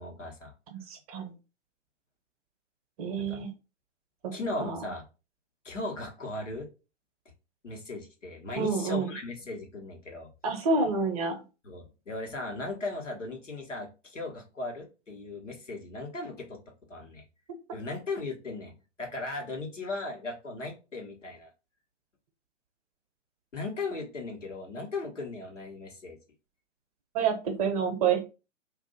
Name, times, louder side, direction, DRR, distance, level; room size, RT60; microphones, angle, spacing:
voice 1, 0.0-0.5 3.2-3.4 4.3-5.0 5.6-6.7 7.6-10.3 11.6-16.6 16.9-17.2 17.7-21.5 23.5-26.2, left 2 dB, 80° left, 0 dB, 1.3 m, -37 dB
voice 2, 0.7-1.3 3.0-3.5 4.6-4.8 8.5-9.1 10.4-11.4 27.1-28.2, right 5 dB, 30° right, 5 dB, 0.8 m, -28 dB
2.6 x 2.6 x 4.0 m, 0.31 s
figure-of-eight pair, 120°, 37 cm